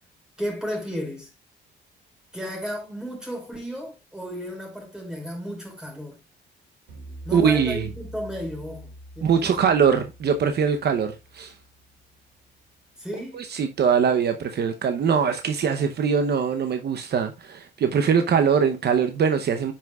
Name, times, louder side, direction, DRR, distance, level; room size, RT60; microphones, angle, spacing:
voice 1, 0.4-1.3 2.3-6.2 7.2-9.7 13.0-13.4, equal, 5° right, 4.4 m, -33 dB
sound 1, 6.9-12.2, right 1 dB, 85° right, 3.4 m, -44 dB
voice 2, 7.3-7.9 9.2-11.5 13.3-19.7, right 6 dB, 55° right, 0.8 m, -22 dB
9.2 x 6.0 x 2.3 m
cardioid pair, 90°, 20 cm